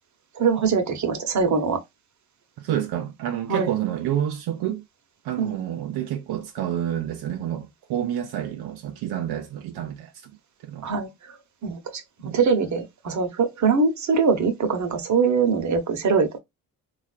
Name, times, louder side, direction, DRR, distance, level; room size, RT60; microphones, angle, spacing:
voice 1, 0.4-1.8 3.5-3.7 5.4-5.6 10.8-11.1 11.6-12.0 12.3-16.4, right 5 dB, 50° right, 0.9 m, -22 dB
voice 2, 2.6-4.8 5.2-10.3 10.6-10.9 12.2-12.4, right 11 dB, 75° right, 0.6 m, -29 dB
3.2 x 2.4 x 2.3 m
supercardioid pair, 65°, 38 cm